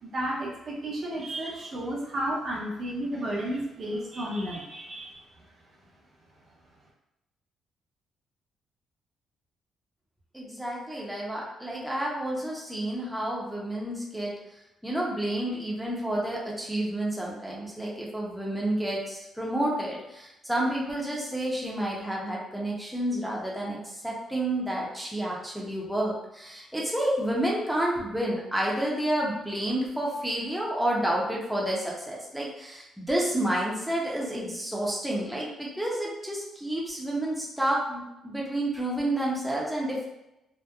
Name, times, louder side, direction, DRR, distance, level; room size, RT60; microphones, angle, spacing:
voice 1, 0.0-5.2, right 1 dB, 50° right, -3 dB, 0.6 m, -32 dB
voice 2, 10.3-14.3 14.8-40.0, right 1 dB, ahead, -5 dB, 0.7 m, -30 dB
2.8 x 2.0 x 2.3 m, 0.89 s
cardioid pair, 90°, 0 cm